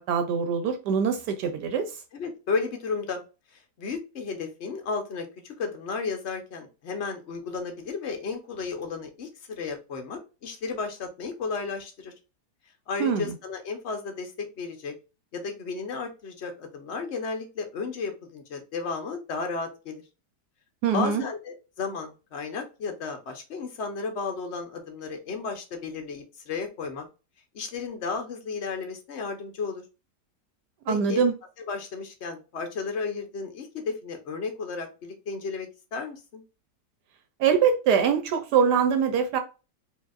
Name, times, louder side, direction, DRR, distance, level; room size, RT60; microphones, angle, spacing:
voice 1, 0.0-1.9 13.0-13.3 20.8-21.2 30.9-31.3 37.4-39.4, right 7 dB, 75° right, 1.2 m, -23 dB
voice 2, 2.1-3.2 3.8-12.1 12.9-14.9 15.3-20.0 20.9-27.1 27.5-29.8 30.9-31.2 31.7-36.4, left 4 dB, 50° left, 1.0 m, -33 dB
4.5 x 2.9 x 2.4 m
omnidirectional pair, 1.8 m